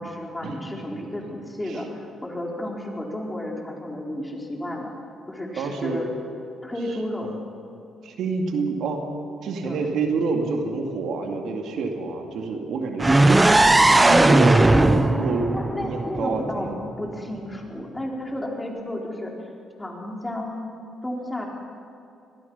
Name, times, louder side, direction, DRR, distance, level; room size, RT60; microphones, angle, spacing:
voice 1, 0.0-4.9 5.3-6.1 6.6-7.3 9.6-9.9 13.5-14.3 14.7-15.1 15.5-16.7 17.0-19.3 19.8-20.7 21.0-21.5, left 1 dB, 15° left, -1 dB, 4.3 m, -32 dB
voice 2, 5.6-6.0 7.3-7.4 8.0-9.0 9.4-15.4 15.8-16.8, right 4 dB, 75° right, 2 dB, 2.7 m, -28 dB
sound 1, 13.0-16.9, right 2 dB, 15° right, 0.9 m, -17 dB
24.5 x 19.5 x 5.7 m, 2.7 s
cardioid pair, 90°, 0 cm